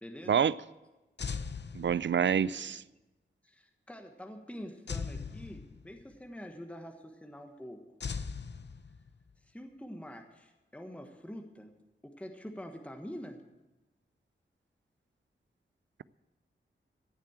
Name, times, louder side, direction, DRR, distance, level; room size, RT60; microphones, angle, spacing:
voice 1, 0.0-0.4 2.2-2.8 3.4-7.8 9.4-11.7 12.0-13.4, equal, 5° left, 3 dB, 1.4 m, -46 dB
sound 1, 1.2-2.5 4.9-6.1 8.0-9.3, left 5 dB, 60° left, 0.7 m, -39 dB
voice 2, 1.7-2.8, right 8 dB, 65° right, 19 dB, 0.4 m, -27 dB
14.5 x 7.4 x 8.8 m, 1.1 s
wide cardioid pair, 80°, 21 cm